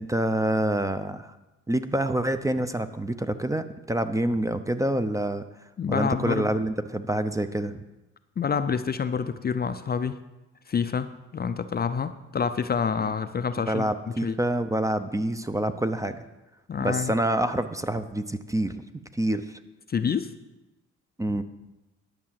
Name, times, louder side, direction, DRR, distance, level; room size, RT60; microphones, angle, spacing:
voice 1, 0.0-1.4 1.7-5.4 5.9-7.8 13.7-16.2 16.8-18.8 19.1-19.6 21.2-21.4, right 1 dB, 10° right, 10 dB, 0.6 m, -27 dB
voice 2, 5.8-6.5 8.4-10.2 10.7-13.9 14.2-14.4 16.7-17.2 19.9-20.3, left 6 dB, 30° left, 10 dB, 0.5 m, -27 dB
11.0 x 5.9 x 7.6 m, 1.0 s
cardioid pair, 90°, 30 cm